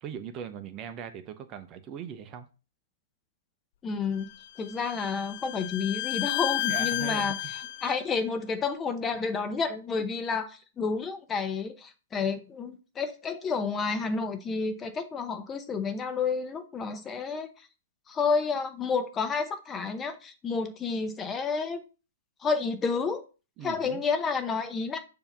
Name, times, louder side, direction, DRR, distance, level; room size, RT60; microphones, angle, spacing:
voice 1, 0.0-2.5 6.7-7.4 9.1-9.2 23.6-24.0, right 8 dB, 30° right, 0.8 m, -39 dB
voice 2, 3.8-4.3 4.6-17.5 18.1-21.8 22.4-23.2 23.6-25.0, left 5 dB, 20° left, 0.8 m, -30 dB
Bowed string instrument, 4.2-8.0, left 16 dB, 45° left, 0.3 m, -32 dB
6.9 x 2.8 x 5.3 m
hypercardioid pair, 125°, 0 cm